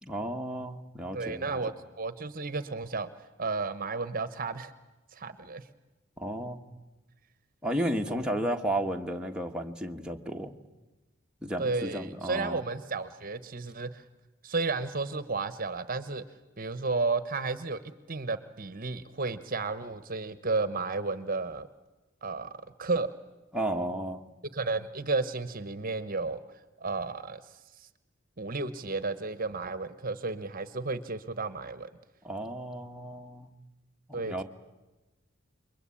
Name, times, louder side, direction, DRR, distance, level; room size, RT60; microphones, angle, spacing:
voice 1, 0.0-1.6 6.2-6.6 7.6-10.5 11.4-12.6 23.5-24.2 32.2-33.5 34.1-34.4, right 1 dB, 5° right, 1 dB, 1.4 m, -33 dB
voice 2, 1.1-4.7 5.1-5.7 8.1-8.3 11.6-14.0 14.4-16.2 16.6-17.8 18.1-21.7 22.2-22.5 22.8-23.1 24.5-26.4 26.8-27.4 27.8-27.9 28.4-31.9 34.1-34.4, right 3 dB, 40° right, 13 dB, 1.1 m, -32 dB
28.5 x 23.0 x 8.6 m, 1.1 s
head